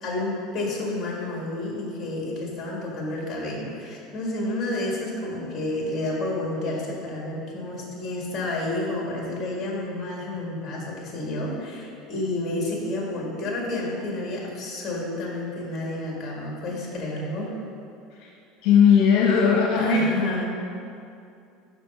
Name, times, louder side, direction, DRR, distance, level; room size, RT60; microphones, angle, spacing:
voice 1, 0.0-17.6 19.8-20.4, left 1 dB, 25° left, -2 dB, 2.0 m, -30 dB
voice 2, 18.6-20.1, left 7 dB, 60° left, -1 dB, 0.9 m, -18 dB
6.7 x 5.9 x 5.4 m, 2.5 s
cardioid pair, 160°, 0 cm